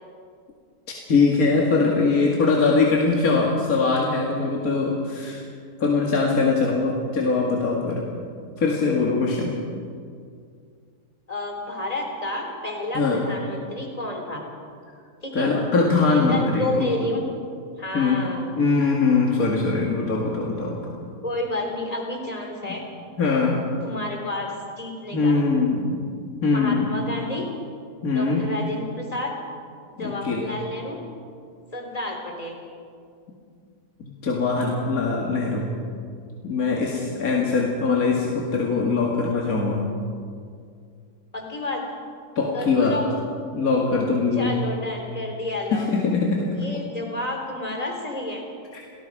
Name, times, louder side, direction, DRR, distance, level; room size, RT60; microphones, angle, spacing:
voice 1, 1.1-5.4 5.8-8.0 8.6-9.5 12.9-13.2 15.3-16.9 17.9-18.3 18.6-20.9 22.6-22.8 23.2-23.6 25.1-26.0 26.4-26.9 28.0-28.4 30.0-30.5 34.0-35.7 36.4-39.9 42.4-43.0 43.5-44.6 45.7-46.5 48.7-48.8, left 4 dB, 60° left, -2 dB, 2.5 m, -22 dB
voice 2, 11.3-14.4 15.2-15.5 16.1-17.2 17.8-18.6 21.2-22.8 23.8-24.5 24.8-25.4 26.5-27.5 28.1-29.3 30.0-31.0 31.7-32.6 41.3-41.8 42.5-43.1 44.3-45.9 46.5-48.4, left 1 dB, 20° left, 1 dB, 3.6 m, -30 dB
29.0 x 19.0 x 4.9 m, 2.2 s
omnidirectional pair, 1.8 m